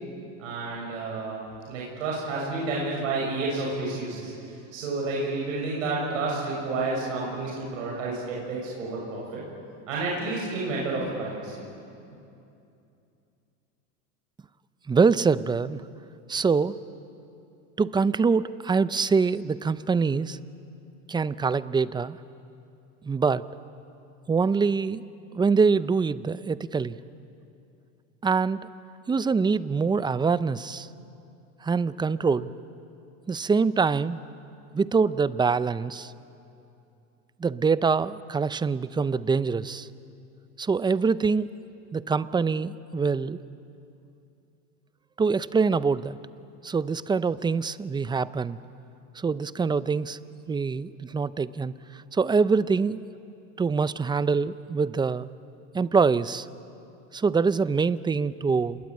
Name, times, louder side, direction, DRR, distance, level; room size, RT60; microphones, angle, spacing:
voice 1, 0.4-9.4 9.9-11.5, right 3 dB, 90° right, -3 dB, 6.8 m, -30 dB
voice 2, 14.9-15.8 16.3-16.8 17.8-20.4 21.1-22.2 23.0-23.4 24.3-25.0 25.3-27.0 28.2-28.7 29.1-30.9 31.6-32.5 33.3-34.2 34.7-36.1 37.4-39.9 40.6-41.6 41.9-43.4 45.2-46.2 46.6-48.6 49.2-50.2 50.5-53.0 53.6-55.3 55.7-56.5 57.1-58.8, right 5 dB, 10° right, 16 dB, 0.5 m, -24 dB
28.0 x 21.5 x 8.7 m, 2.7 s
supercardioid pair, 115°, 38 cm